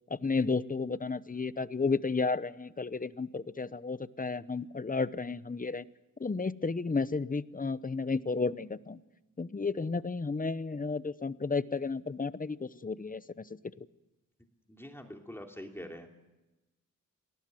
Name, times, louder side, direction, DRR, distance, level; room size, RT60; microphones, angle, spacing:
voice 1, 0.1-5.8 6.2-9.0 9.4-13.2 13.8-13.9, left 4 dB, 25° left, 16 dB, 0.9 m, -32 dB
voice 2, 14.7-16.1, equal, 5° left, 2 dB, 2.9 m, -44 dB
27.0 x 19.0 x 7.8 m, 1.1 s
cardioid pair, 80°, 32 cm